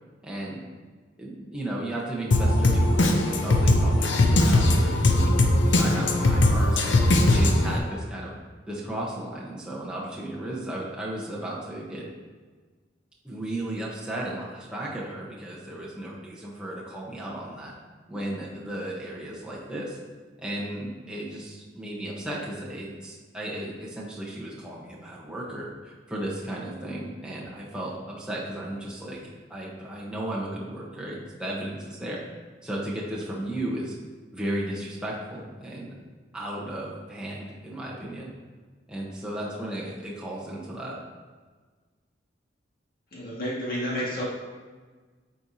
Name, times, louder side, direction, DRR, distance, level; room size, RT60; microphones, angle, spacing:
voice 1, 0.2-0.6 1.2-5.4 5.7-7.0 7.3-8.3 8.7-12.1 13.2-17.7 18.1-20.0 20.4-32.2 32.6-33.9 34.3-35.9 36.3-38.3 38.9-41.0, right 1 dB, 5° right, -5 dB, 1.0 m, -35 dB
Drum kit, 2.3-7.8, left 1 dB, 90° left, 0.7 m, -20 dB
voice 2, 43.1-44.2, equal, 55° left, -6 dB, 1.9 m, -30 dB
8.7 x 4.6 x 2.8 m, 1.4 s
head